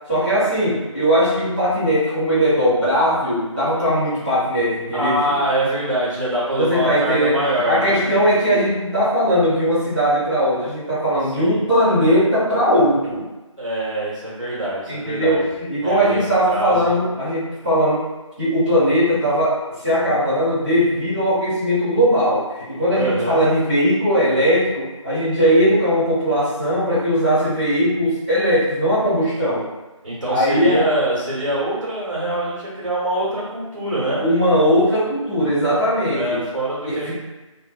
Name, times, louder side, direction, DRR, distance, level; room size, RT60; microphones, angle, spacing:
voice 1, 0.1-5.2 6.6-7.4 7.6-13.3 14.9-18.0 18.4-19.6 19.8-29.7 30.3-30.8 34.2-36.4 36.9-37.1, equal, 20° right, -18 dB, 1.1 m, -19 dB
voice 2, 4.9-8.0 11.4-11.6 13.6-15.4 15.8-17.0 23.0-23.4 30.0-34.2 36.1-37.1, right 1 dB, 70° right, -7 dB, 1.5 m, -24 dB
2.5 x 2.1 x 2.4 m, 1.1 s
figure-of-eight pair, 170°, 17 cm